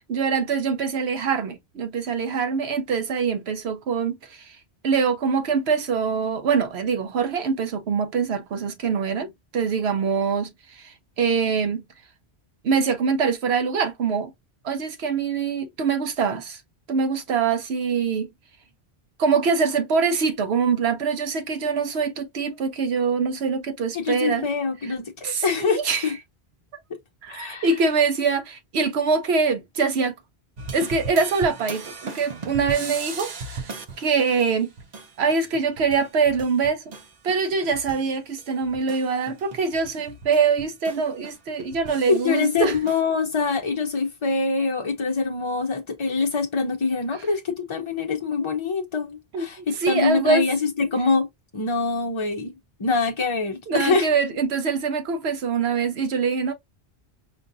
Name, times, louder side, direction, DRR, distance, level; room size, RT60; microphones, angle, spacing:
voice 1, 0.1-4.6 4.8-11.8 12.6-14.3 14.6-16.6 16.9-18.3 19.2-24.4 25.2-26.1 27.2-30.2 30.7-33.7 34.0-34.7 35.2-36.9 37.2-42.8 49.3-50.4 53.7-56.5, right 5 dB, 75° right, 0.9 m, -24 dB
voice 2, 23.9-26.2 27.3-27.7 42.1-54.1, left 4 dB, 40° left, 0.5 m, -24 dB
sound 1, 30.6-38.1 38.4-43.0, right 4 dB, 45° right, 0.7 m, -38 dB
5.2 x 2.4 x 2.5 m
omnidirectional pair, 1.1 m